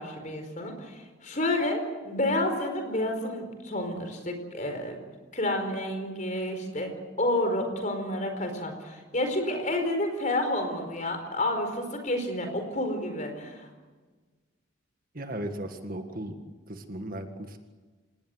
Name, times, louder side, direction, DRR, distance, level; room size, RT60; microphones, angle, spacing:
voice 1, 0.0-5.0 5.3-13.7, left 1 dB, 35° left, 6 dB, 4.7 m, -30 dB
voice 2, 15.1-16.4 16.7-17.6, right 1 dB, 45° right, 6 dB, 1.9 m, -36 dB
27.5 x 19.0 x 8.0 m, 1.4 s
head